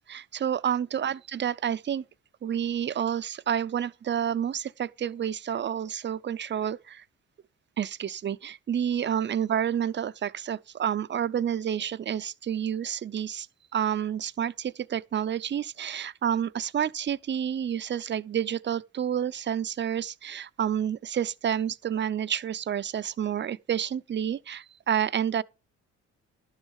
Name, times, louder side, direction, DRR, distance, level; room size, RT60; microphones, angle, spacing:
voice 1, 0.0-2.0 2.4-7.0 7.8-13.5 13.7-25.4, right 9 dB, 40° right, 0.6 m, -29 dB
11.5 x 6.4 x 6.3 m
cardioid pair, 90°, 30 cm